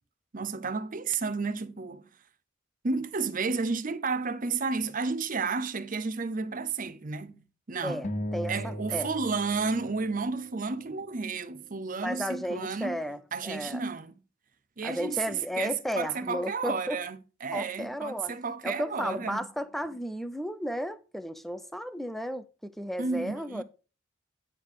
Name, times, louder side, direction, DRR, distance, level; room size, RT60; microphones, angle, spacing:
voice 1, 0.3-2.1 2.8-8.0 8.5-13.0 13.3-14.1 14.8-19.5 23.0-23.6, right 4 dB, 40° right, 0.7 m, -32 dB
voice 2, 7.8-9.1 12.0-13.8 14.8-17.0 17.5-18.4 18.6-23.6, equal, ahead, 0.4 m, -34 dB
sound 1, 8.0-10.7, equal, 35° left, 0.7 m, -37 dB
9.9 x 3.6 x 6.4 m
head